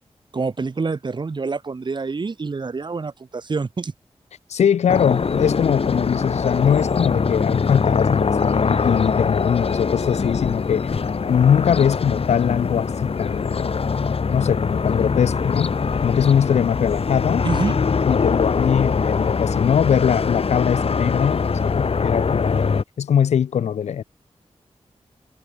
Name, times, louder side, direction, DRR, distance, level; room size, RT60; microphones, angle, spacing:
voice 1, 0.3-3.9 17.4-17.8, right 4 dB, 45° right, 0.9 m, -26 dB
voice 2, 4.5-10.9 11.3-13.7 14.3-15.7 16.0-17.5 18.1-22.6 23.0-24.0, left 8 dB, 85° left, 0.4 m, -21 dB
sound 1, 4.9-22.8, left 5 dB, 60° left, 1.5 m, -22 dB
wide cardioid pair, 75°, 11 cm